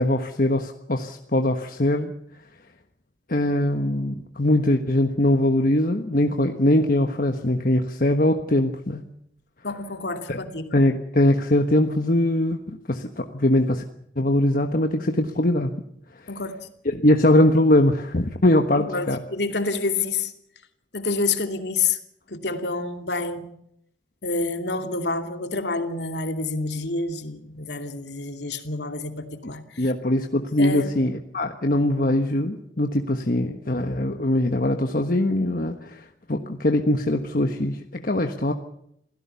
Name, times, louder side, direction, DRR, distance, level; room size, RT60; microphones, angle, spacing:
voice 1, 0.0-2.1 3.3-9.0 10.3-10.4 10.7-13.8 14.2-15.7 16.8-19.2 29.4-29.5 29.8-38.5, left 1 dB, 50° left, 5 dB, 1.3 m, -22 dB
voice 2, 9.6-10.7 16.3-16.6 18.8-20.3 20.9-22.0 22.3-23.5 24.2-29.9 30.6-30.9, left 3 dB, 70° left, 6 dB, 2.7 m, -28 dB
28.0 x 17.0 x 7.0 m, 0.73 s
head